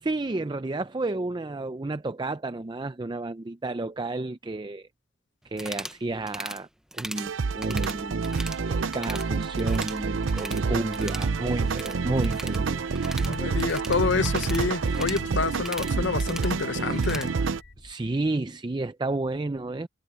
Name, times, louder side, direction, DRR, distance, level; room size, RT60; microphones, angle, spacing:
voice 1, 0.0-4.9 5.4-6.7 6.9-12.8 17.8-19.9, right 2 dB, 25° right, 0.5 m, -31 dB
sound 1, 5.5-6.0 6.3-6.6 6.9-7.3 7.6-8.6 8.9-9.3 9.6-10.7 10.9-17.3, right 1 dB, 5° right, 0.8 m, -39 dB
sound 2, 7.2-17.6, right 4 dB, 90° right, 0.6 m, -28 dB
sound 3, 7.9-17.9, left 1 dB, 85° left, 3.2 m, -47 dB
voice 2, 13.2-17.3, left 4 dB, 65° left, 0.8 m, -28 dB
head